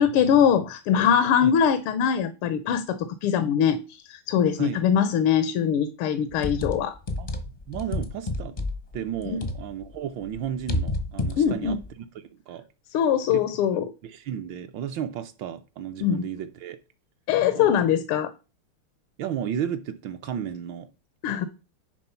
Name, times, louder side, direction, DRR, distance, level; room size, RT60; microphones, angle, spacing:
voice 1, 0.0-6.9 9.3-9.4 11.4-11.8 12.9-13.9 16.0-16.2 17.3-18.3 21.2-21.5, left 8 dB, 85° left, 1.6 m, -22 dB
sound 1, 6.3-10.0 10.2-11.9, left 2 dB, 40° left, 0.5 m, -30 dB
voice 2, 7.7-8.7 8.9-12.6 13.3-13.4 14.0-16.8 17.5-17.7 19.2-20.9, right 9 dB, 70° right, 1.3 m, -33 dB
10.0 x 3.6 x 5.6 m
omnidirectional pair, 2.3 m